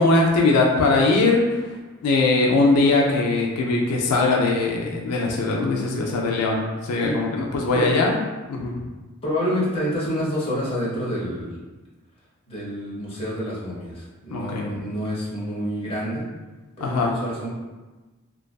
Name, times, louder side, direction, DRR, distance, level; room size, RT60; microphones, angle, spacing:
voice 1, 0.0-8.2 8.5-8.8 14.3-14.6 16.8-17.1, left 3 dB, 85° left, -1 dB, 0.4 m, -21 dB
voice 2, 9.2-11.5 12.5-16.2 16.8-17.5, equal, 25° left, -7 dB, 0.7 m, -28 dB
2.5 x 2.3 x 2.2 m, 1.2 s
head